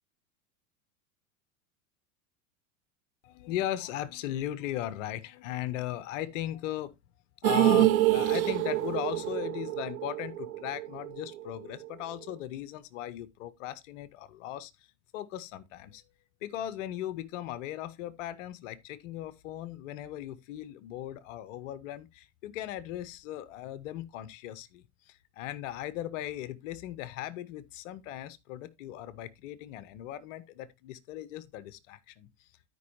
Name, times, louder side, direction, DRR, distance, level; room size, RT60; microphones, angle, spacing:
voice 1, 3.2-7.0 7.4-14.7 15.1-16.0 16.4-32.5, left 12 dB, 60° left, 1.1 m, -38 dB
sound 1, 7.4-11.6 11.8-11.9 12.3-12.4, right 14 dB, 75° right, 1.0 m, -26 dB
12.5 x 5.4 x 3.1 m
hypercardioid pair, 95°, 43 cm